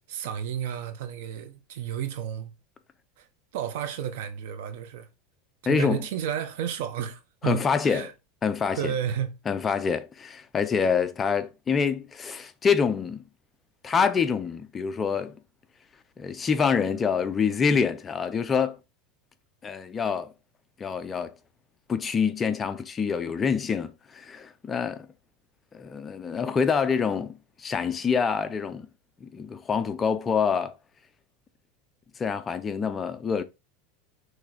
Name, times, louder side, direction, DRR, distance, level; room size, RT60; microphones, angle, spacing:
voice 1, 0.1-2.5 3.2-3.3 3.5-5.1 5.6-8.1 8.7-9.3, right 9 dB, 70° right, 1.3 m, -32 dB
voice 2, 5.7-6.0 7.4-8.1 8.4-8.9 9.5-13.2 13.8-15.4 16.2-18.8 19.6-20.3 20.8-21.4 21.9-25.1 25.7-28.9 29.2-30.8 32.2-33.4, left 6 dB, 20° left, 0.6 m, -26 dB
6.4 x 3.3 x 4.9 m
supercardioid pair, 150°, 0 cm